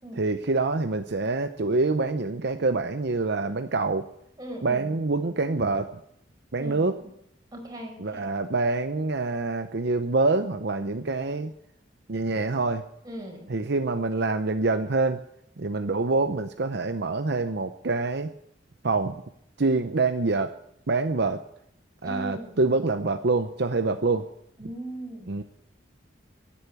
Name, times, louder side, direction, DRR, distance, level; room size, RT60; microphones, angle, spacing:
voice 1, 0.1-4.1 4.6-6.0 6.5-7.0 8.0-11.5 12.1-12.8 13.5-15.2 15.6-18.3 18.8-19.2 19.6-20.5 20.9-21.4 22.0-24.3 25.3-25.4, right 3 dB, 60° right, 8 dB, 0.8 m, -26 dB
voice 2, 4.4-5.0 6.5-7.1 7.5-8.3 13.0-13.5 22.0-22.6 24.6-25.4, right 1 dB, 20° right, 0 dB, 4.9 m, -39 dB
13.0 x 10.5 x 9.2 m, 0.75 s
head